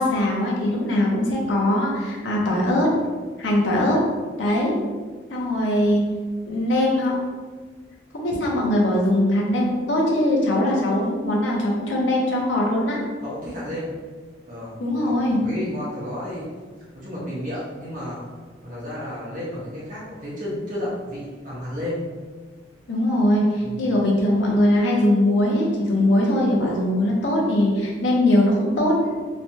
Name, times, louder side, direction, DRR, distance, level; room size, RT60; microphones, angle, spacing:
voice 1, 0.0-2.9 3.4-4.0 4.4-4.7 5.3-6.0 6.5-7.1 8.1-13.0 14.8-15.4 22.9-29.1, left 1 dB, 80° left, -3 dB, 0.7 m, -21 dB
voice 2, 13.2-13.9 14.5-14.8 15.0-16.5 16.9-18.2 18.6-22.0 23.6-23.9, left 1 dB, 45° right, -7 dB, 1.0 m, -32 dB
3.2 x 2.2 x 2.6 m, 1.4 s
head